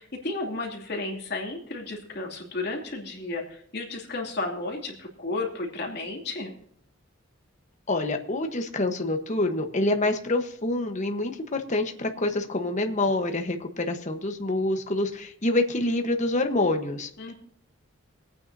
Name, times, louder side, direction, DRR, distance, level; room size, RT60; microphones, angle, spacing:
voice 1, 0.0-6.5 17.2-17.3, left 2 dB, 55° left, 0 dB, 2.7 m, -33 dB
voice 2, 7.9-17.1, left 2 dB, 40° left, 5 dB, 1.2 m, -26 dB
23.5 x 9.2 x 2.7 m, 0.65 s
head